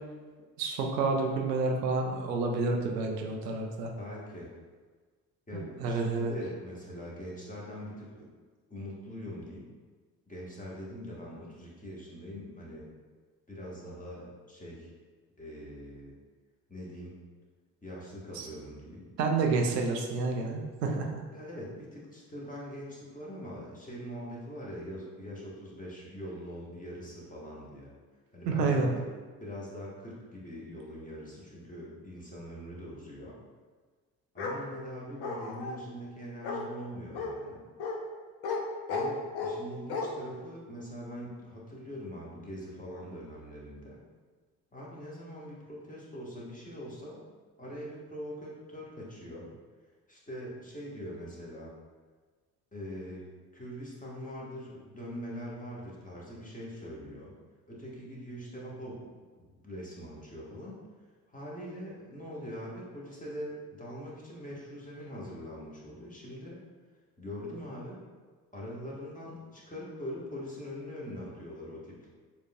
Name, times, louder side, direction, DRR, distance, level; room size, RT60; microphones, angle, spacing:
voice 1, 0.6-3.9 5.8-6.3 18.3-18.5 19.2-21.2 28.5-28.9, right 3 dB, 80° right, 2 dB, 0.6 m, -29 dB
voice 2, 3.9-4.5 5.5-8.2 8.7-9.7 10.3-12.9 13.5-14.9 15.4-16.1 16.7-17.1 17.8-19.1 21.3-27.9 28.3-28.9 29.4-33.4 34.3-37.6 38.9-44.0 44.7-47.2 47.6-49.5 50.1-51.7 52.7-53.2 53.5-57.3 57.7-59.1 59.4-60.8 61.3-66.6 67.2-68.0 68.5-72.1, equal, 15° left, -5 dB, 1.4 m, -42 dB
Bark, 34.4-34.6 35.2-35.8 36.4-36.6 37.1-37.3 37.8-38.0 38.4-38.6 38.9-39.6 39.9-40.1, left 4 dB, 55° left, 0.7 m, -33 dB
7.0 x 2.5 x 2.3 m, 1.4 s
figure-of-eight pair, 50°, 48 cm